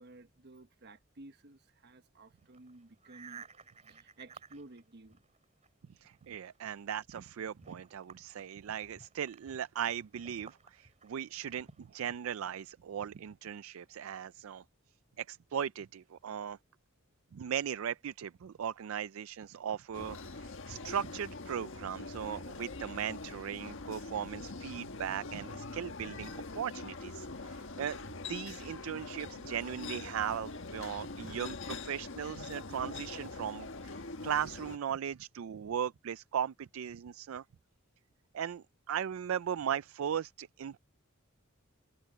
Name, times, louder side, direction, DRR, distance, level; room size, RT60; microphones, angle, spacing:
voice 1, 0.0-5.2 5.8-5.9, right 2 dB, 55° right, 1.1 m, -54 dB
sound 1, 2.4-5.7 6.0-12.2, right 5 dB, 35° right, 2.7 m, -56 dB
voice 2, 6.0-14.6 15.2-16.6 17.3-37.4 38.3-40.8, right 8 dB, 75° right, 0.4 m, -38 dB
sound 2, 19.9-34.8, left 3 dB, 65° left, 1.5 m, -43 dB
head